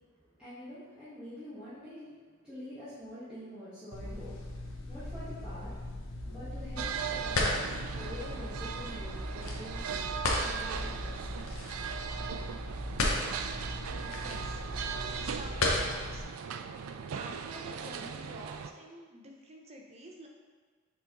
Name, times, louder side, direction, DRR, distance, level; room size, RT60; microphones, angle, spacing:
voice 1, 0.2-5.8 6.3-10.0 10.3-11.3, left 1 dB, 5° right, -16 dB, 1.7 m, -46 dB
sound 1, 3.9-16.2, left 1 dB, 80° left, 0.9 m, -35 dB
sound 2, 6.8-18.7, right 7 dB, 85° right, 0.4 m, -39 dB
voice 2, 14.0-14.6 15.1-16.2 17.1-20.3, right 1 dB, 30° right, 0 dB, 0.7 m, -49 dB
6.8 x 3.7 x 3.9 m, 1.5 s
head